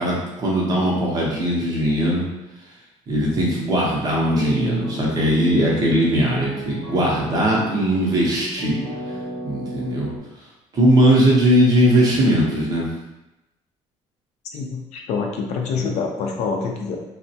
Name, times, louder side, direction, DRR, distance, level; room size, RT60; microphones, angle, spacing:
voice 1, 0.0-2.2 3.1-8.8 9.4-10.1 10.7-12.9, equal, 30° right, -4 dB, 0.6 m, -19 dB
sound 1, 4.0-10.2, equal, 10° left, 0.8 m, -33 dB
voice 2, 14.5-17.0, left 5 dB, 65° left, 1 dB, 0.4 m, -26 dB
3.3 x 2.0 x 2.7 m, 0.96 s
cardioid pair, 175°, 12 cm